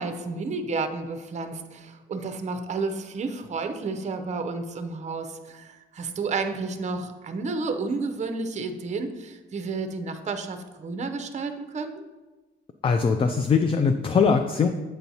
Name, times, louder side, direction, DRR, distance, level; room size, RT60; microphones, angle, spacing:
voice 1, 0.0-12.0, right 4 dB, 35° right, 7 dB, 0.6 m, -31 dB
voice 2, 12.8-14.7, left 5 dB, 30° left, 7 dB, 0.3 m, -21 dB
7.7 x 4.4 x 2.7 m, 1.2 s
cardioid pair, 90°, 20 cm